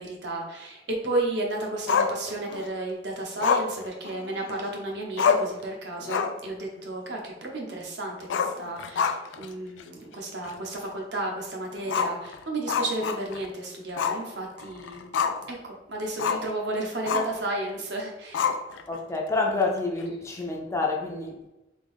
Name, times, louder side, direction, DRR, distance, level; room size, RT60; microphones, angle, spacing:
voice 1, 0.0-15.1 15.5-18.5, right 2 dB, 65° right, 0 dB, 0.9 m, -33 dB
Growling, 1.9-2.7 3.4-4.7 4.9-5.0 5.2-5.6 6.0-6.5 6.8-6.9 8.2-9.5 9.8-9.9 10.5-10.6 11.9-13.5 14.0-14.2 14.6-15.5 16.2-16.5 17.1-17.4 18.3-19.0, left 6 dB, 90° left, 0.4 m, -27 dB
voice 2, 18.9-21.5, left 3 dB, 15° left, 0 dB, 0.5 m, -28 dB
3.6 x 3.4 x 3.6 m, 0.99 s
head